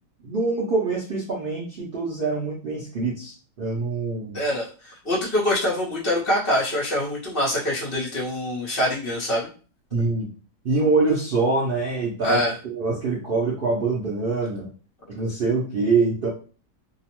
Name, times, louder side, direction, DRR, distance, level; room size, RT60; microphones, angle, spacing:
voice 1, 0.2-4.4 9.9-10.3 10.6-12.4 12.6-14.7 15.1-16.3, right 3 dB, 75° right, -4 dB, 0.5 m, -24 dB
voice 2, 4.3-9.5 12.2-12.5, left 1 dB, 45° left, -5 dB, 0.8 m, -24 dB
2.8 x 2.0 x 2.9 m, 0.38 s
omnidirectional pair, 1.7 m